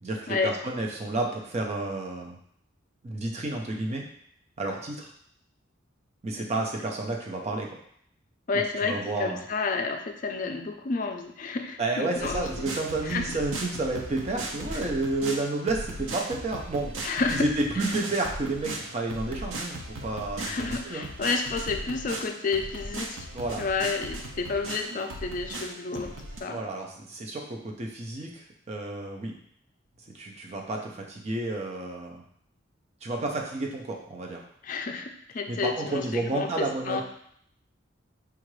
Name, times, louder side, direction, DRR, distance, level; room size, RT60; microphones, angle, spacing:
voice 1, 0.0-2.4 3.0-4.0 4.6-5.1 6.2-7.7 8.8-9.4 11.8-16.9 17.3-21.0 23.3-23.6 26.5-29.3 30.1-32.2 33.0-34.4 35.5-37.0, right 2 dB, 35° right, 1 dB, 0.5 m, -31 dB
voice 2, 8.5-12.7 13.0-13.3 17.0-17.5 20.4-23.3 23.6-26.6 34.6-37.0, left 4 dB, 40° left, 5 dB, 0.4 m, -30 dB
sound 1, 12.2-26.4, right 1 dB, 80° right, 0.6 m, -37 dB
4.5 x 2.5 x 3.1 m, 0.66 s
head